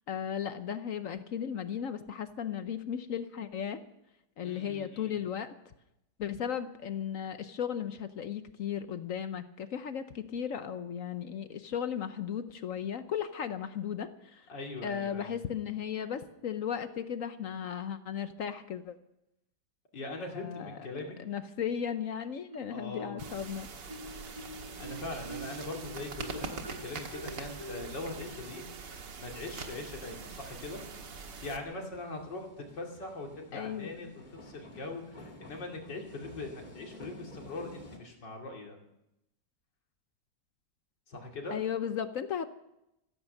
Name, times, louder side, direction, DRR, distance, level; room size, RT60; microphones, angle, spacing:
voice 1, 0.1-3.8 4.4-5.6 6.2-14.5 14.8-19.0 20.2-20.8 21.2-23.7 33.5-34.1 41.5-42.5, left 8 dB, 60° left, 11 dB, 1.0 m, -36 dB
voice 2, 4.4-5.2 14.5-15.3 19.9-21.2 22.7-23.2 24.8-30.8 31.4-38.8 41.1-41.6, left 2 dB, 85° left, 1 dB, 3.2 m, -41 dB
Marimba xylophone, 22.5-23.4 23.9-29.4, right 1 dB, 20° right, 1.8 m, -47 dB
sound 1, 23.2-31.6, right 5 dB, 85° right, 2.2 m, -43 dB
sound 2, 28.8-38.0, equal, 25° left, 2.4 m, -53 dB
14.5 x 14.5 x 6.5 m, 0.86 s
omnidirectional pair, 1.9 m